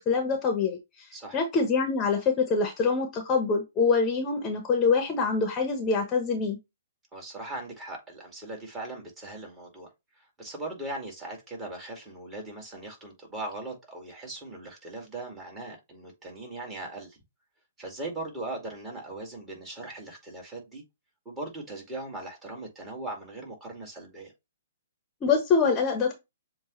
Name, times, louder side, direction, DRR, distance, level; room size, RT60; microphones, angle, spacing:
voice 1, 0.0-1.1 1.3-6.6 25.2-26.1, left 4 dB, 25° left, 1.1 m, -25 dB
voice 2, 7.1-9.9 10.1-17.2 17.8-20.8 21.3-24.3, right 2 dB, 15° right, 2.3 m, -39 dB
7.1 x 2.4 x 3.1 m
hypercardioid pair, 135°, 0 cm